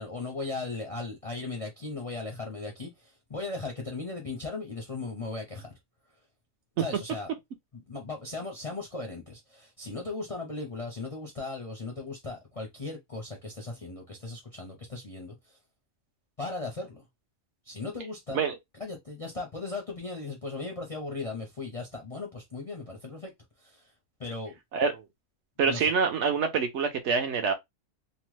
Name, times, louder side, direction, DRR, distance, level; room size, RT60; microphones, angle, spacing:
voice 1, 0.0-5.8 6.8-7.3 7.7-15.6 16.4-17.0 17.7-18.4 18.8-23.3 23.6-23.9 24.2-24.5 25.6-25.9, left 3 dB, 40° left, 0.5 m, -37 dB
voice 2, 24.7-25.0 25.6-27.5, right 5 dB, 65° right, 0.9 m, -26 dB
2.9 x 2.1 x 3.1 m
omnidirectional pair, 1.4 m